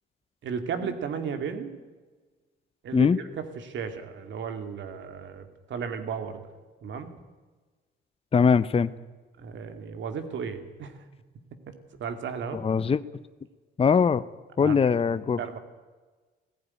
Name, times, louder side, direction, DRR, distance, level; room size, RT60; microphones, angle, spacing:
voice 1, 0.4-1.8 2.8-6.4 6.8-7.1 9.4-11.0 11.7-12.6 14.6-14.8 15.4-15.6, right 6 dB, 70° right, 8 dB, 2.6 m, -34 dB
voice 2, 8.3-8.9 12.5-13.0 13.8-14.2 14.6-15.4, left 6 dB, 30° left, 14 dB, 0.7 m, -21 dB
17.0 x 15.5 x 9.9 m, 1.3 s
cardioid pair, 90°, 20 cm